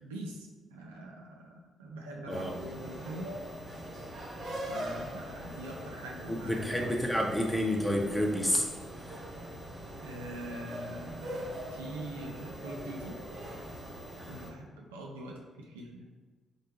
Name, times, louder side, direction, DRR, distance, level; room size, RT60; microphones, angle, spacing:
voice 1, 0.0-3.4 4.7-6.9 10.0-13.2 14.3-16.0, right 1 dB, 85° right, -1 dB, 0.4 m, -43 dB
sound 1, 2.3-14.5, equal, 60° right, 0.8 m, -42 dB
voice 2, 6.5-8.7 9.1-9.2, equal, 5° left, -1 dB, 0.8 m, -29 dB
4.3 x 2.1 x 3.1 m, 1.4 s
hypercardioid pair, 45°, 0 cm